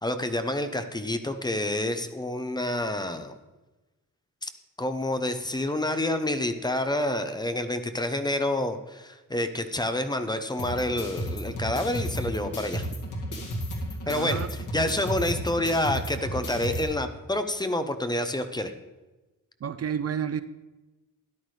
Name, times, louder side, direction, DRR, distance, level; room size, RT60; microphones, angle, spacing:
voice 1, 0.0-3.3 4.4-4.5 4.8-12.9 14.1-18.7, left 1 dB, 10° left, 8 dB, 0.6 m, -28 dB
sound 1, 10.6-16.8, equal, 65° left, 2.2 m, -33 dB
voice 2, 14.1-14.5 19.6-20.4, right 8 dB, 45° right, 12 dB, 0.4 m, -30 dB
13.0 x 11.0 x 3.2 m, 1.1 s
wide cardioid pair, 140°, 34 cm